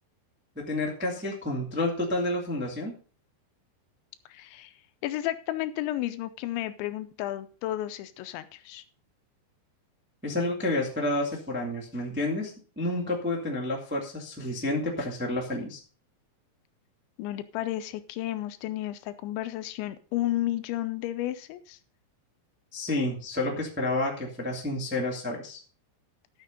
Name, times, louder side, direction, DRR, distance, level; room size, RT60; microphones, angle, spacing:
voice 1, 0.5-2.9 10.2-15.8 22.7-25.6, left 2 dB, 5° right, -1 dB, 0.9 m, -30 dB
voice 2, 4.3-4.7 5.0-8.8 17.2-21.8, left 14 dB, 80° left, 11 dB, 2.9 m, -32 dB
13.0 x 6.6 x 5.2 m, 0.39 s
omnidirectional pair, 5.4 m